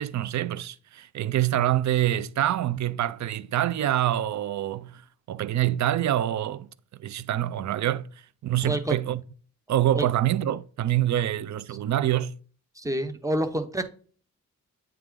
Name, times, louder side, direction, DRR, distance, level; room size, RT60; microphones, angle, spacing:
voice 1, 0.0-5.0 5.3-6.7 7.0-8.1 8.4-9.2 9.7-12.4, right 12 dB, 60° right, 0.5 m, -26 dB
voice 2, 8.6-9.0 9.9-10.0 12.8-13.8, right 1 dB, 10° right, 0.8 m, -28 dB
8.9 x 3.5 x 3.7 m
wide cardioid pair, 120°, 33 cm